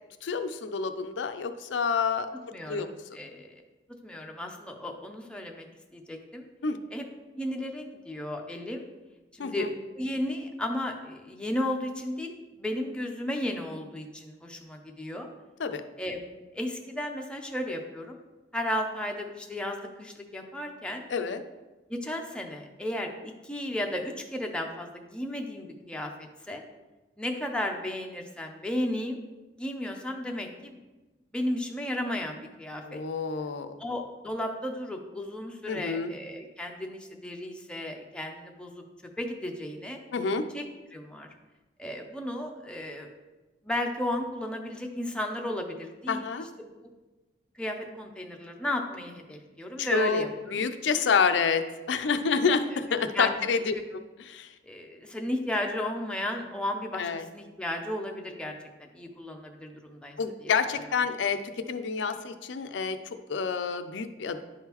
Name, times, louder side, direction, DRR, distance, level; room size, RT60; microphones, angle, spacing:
voice 1, 0.2-2.3 2.6-2.9 6.6-6.8 9.4-9.7 15.6-15.8 21.1-21.4 32.9-33.8 35.7-36.1 40.1-40.4 46.1-46.5 49.8-50.3 50.5-53.7 54.3-54.5 57.0-57.2 60.2-64.4, left 5 dB, 70° left, 9 dB, 0.5 m, -28 dB
voice 2, 2.5-3.5 4.0-5.7 5.9-6.4 6.9-7.0 7.4-8.8 9.3-15.3 16.0-18.2 18.5-21.0 21.9-26.1 26.5-26.6 27.2-29.2 29.6-30.8 31.3-33.0 33.8-38.8 39.2-40.0 40.5-40.6 40.9-41.3 41.8-43.1 43.6-46.2 46.6-46.8 47.6-50.6 52.1-52.4 52.7-52.8 53.1-53.4 53.7-53.8 54.6-58.5 58.8-60.2 60.4-60.5, left 1 dB, 5° left, 2 dB, 0.6 m, -34 dB
10.5 x 3.7 x 3.0 m, 1.1 s
head